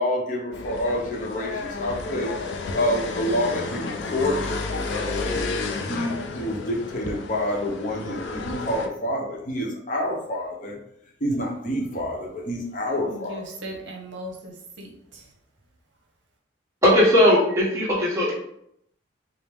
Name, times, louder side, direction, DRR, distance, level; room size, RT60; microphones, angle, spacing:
voice 1, 0.0-2.3 2.7-10.8 11.2-13.4, left 1 dB, 40° left, -1 dB, 0.7 m, -28 dB
sound 1, 0.5-8.9, left 3 dB, 65° left, 0.4 m, -31 dB
voice 2, 13.0-15.3, right 1 dB, 65° right, 0 dB, 0.8 m, -38 dB
voice 3, 16.8-18.3, left 1 dB, 15° right, -6 dB, 1.1 m, -18 dB
5.0 x 2.0 x 3.4 m, 0.73 s
head